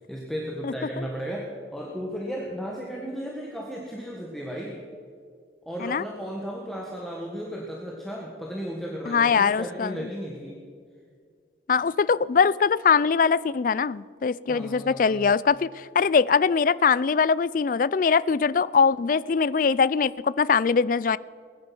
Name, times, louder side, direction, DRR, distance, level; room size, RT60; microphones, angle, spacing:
voice 1, 0.0-4.8 5.6-10.6 14.5-15.3, equal, ahead, -2 dB, 1.6 m, -35 dB
voice 2, 0.6-1.0 5.8-6.0 9.1-10.0 11.7-21.2, left 5 dB, 45° left, 20 dB, 0.4 m, -22 dB
21.0 x 10.5 x 6.0 m, 2.1 s
head